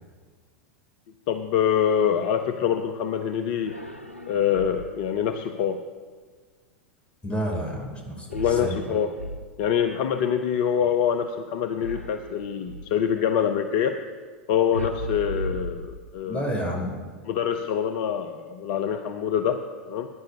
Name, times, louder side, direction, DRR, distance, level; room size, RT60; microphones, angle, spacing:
voice 1, 1.3-3.8 4.3-5.8 8.3-9.1 9.6-14.0 14.5-16.4 17.3-20.1, left 8 dB, 50° left, 8 dB, 0.6 m, -25 dB
sound 1, 3.6-5.1 8.3-9.9 11.8-13.0 14.7-16.4, equal, 90° left, 0.6 m, -36 dB
voice 2, 7.2-9.0 16.3-17.0, equal, 15° left, 0 dB, 3.4 m, -30 dB
20.0 x 10.0 x 2.8 m, 1.5 s
figure-of-eight pair, 90°, 6 cm